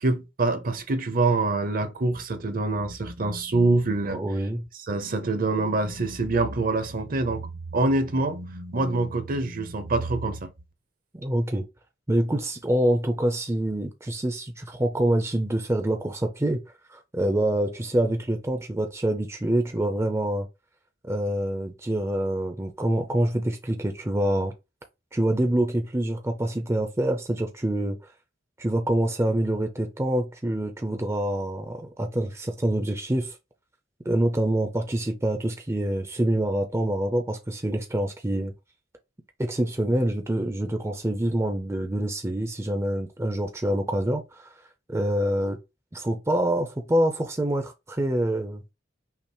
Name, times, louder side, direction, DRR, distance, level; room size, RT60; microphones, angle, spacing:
voice 1, 0.0-4.2 4.9-10.5, right 2 dB, 50° right, 0.8 m, -25 dB
voice 2, 4.1-4.6 11.1-11.7 12.1-16.6 16.9-20.5 21.0-24.5 25.1-28.0 28.6-33.4 34.0-38.5 39.4-44.5 44.9-45.6 45.9-48.6, right 1 dB, 15° right, 0.5 m, -26 dB
5.7 x 2.0 x 4.3 m
head